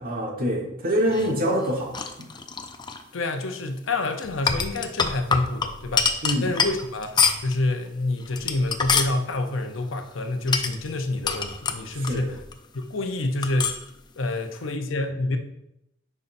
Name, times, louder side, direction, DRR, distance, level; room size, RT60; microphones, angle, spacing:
voice 1, 0.0-2.3 6.2-6.5 11.9-12.3, equal, 45° right, 0 dB, 1.4 m, -25 dB
sound 1, 1.1-3.0 4.2-7.6 8.2-9.2 10.5-12.5 12.8-12.9 13.4-13.9, left 5 dB, 20° left, 0.5 m, -26 dB
voice 2, 3.1-6.1 6.4-12.4 12.7-13.8 14.2-15.4, left 2 dB, 70° left, 6 dB, 0.7 m, -28 dB
9.4 x 5.5 x 2.6 m, 0.84 s
head